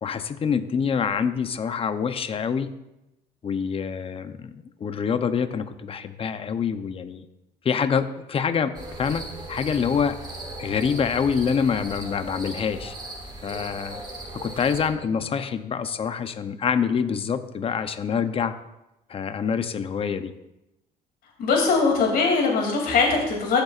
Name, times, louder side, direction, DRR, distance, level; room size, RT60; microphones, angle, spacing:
voice 1, 0.0-2.7 3.4-7.2 7.6-10.2 10.6-12.9 13.4-14.0 14.3-18.5 19.1-20.3, left 6 dB, 35° left, 10 dB, 0.7 m, -26 dB
sound 1, 8.7-14.9, right 2 dB, 25° right, 1.9 m, -38 dB
voice 2, 21.4-23.6, left 4 dB, 65° left, 0 dB, 2.7 m, -21 dB
14.0 x 6.6 x 2.5 m, 0.92 s
cardioid pair, 110°, 17 cm